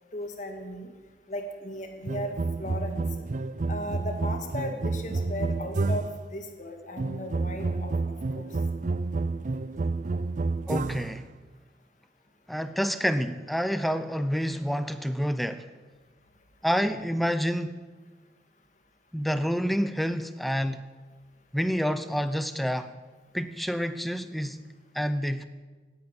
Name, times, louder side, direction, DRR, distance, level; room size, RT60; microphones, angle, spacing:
voice 1, 0.1-0.9 1.3-2.3 2.6-3.0 3.7-6.0 6.3-7.9 8.3-8.5, left 1 dB, 45° left, 4 dB, 2.1 m, -36 dB
sound 1, 2.1-6.3 7.0-11.2, right 3 dB, 45° right, 0.4 m, -30 dB
voice 2, 10.7-11.3 12.5-15.6 16.6-17.8 19.1-20.8 21.5-22.9 23.3-24.6 24.9-25.5, equal, ahead, 11 dB, 0.6 m, -28 dB
18.0 x 9.2 x 8.2 m, 1.4 s
head